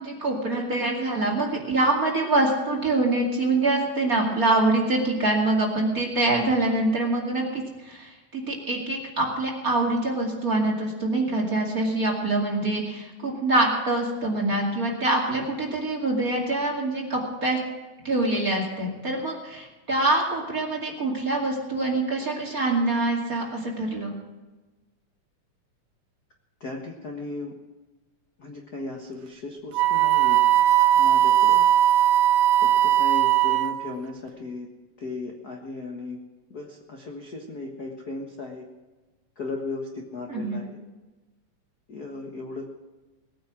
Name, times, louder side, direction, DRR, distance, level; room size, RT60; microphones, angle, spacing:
voice 1, 0.0-17.6 18.0-24.1 40.3-40.6, right 2 dB, 30° right, 1 dB, 2.5 m, -25 dB
voice 2, 26.6-27.5 28.4-30.4 30.9-31.6 32.8-34.7 35.0-36.2 36.5-38.7 39.4-40.8 41.9-42.7, left 3 dB, 45° left, 1 dB, 1.2 m, -36 dB
Wind instrument woodwind instrument, 29.7-33.9, right 12 dB, 80° right, 2.3 m, -19 dB
20.0 x 9.3 x 6.2 m, 1.2 s
omnidirectional pair, 3.8 m